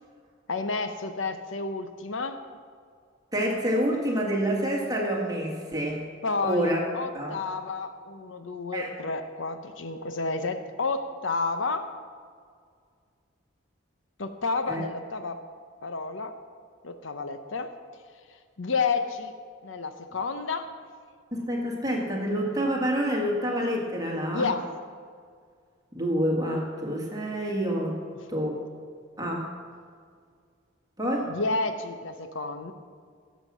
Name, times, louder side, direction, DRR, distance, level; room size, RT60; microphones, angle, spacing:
voice 1, 0.5-2.4 6.2-11.8 14.2-15.4 15.8-16.3 16.8-17.7 18.6-19.3 19.6-20.7 24.3-24.7 31.3-32.7, left 4 dB, 75° left, 8 dB, 0.8 m, -30 dB
voice 2, 3.3-6.0 6.4-6.8 7.1-7.4 8.7-8.9 14.7-14.8 21.3-24.5 25.9-28.0 28.3-28.6 29.2-29.5 31.0-31.3, equal, 20° right, -1 dB, 1.8 m, -27 dB
17.0 x 7.4 x 6.1 m, 2.1 s
head